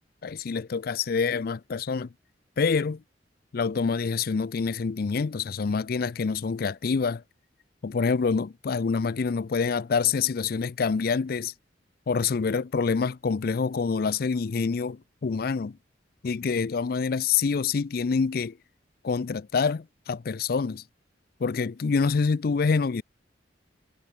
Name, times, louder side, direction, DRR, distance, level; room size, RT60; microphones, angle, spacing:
voice 1, 0.2-2.1 2.6-3.0 3.5-7.2 7.8-11.5 12.1-15.8 16.2-18.6 19.0-20.8 21.4-23.0, left 5 dB, 55° left, 0.4 m, -26 dB
head